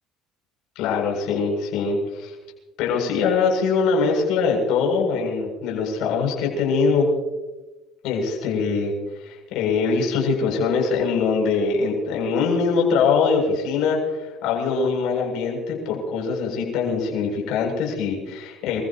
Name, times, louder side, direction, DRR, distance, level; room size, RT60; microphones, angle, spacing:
voice 1, 0.8-2.3 2.8-7.1 8.0-18.8, left 5 dB, 75° left, -1 dB, 7.6 m, -23 dB
29.0 x 15.5 x 3.1 m, 1.1 s
supercardioid pair, 95°, 0 cm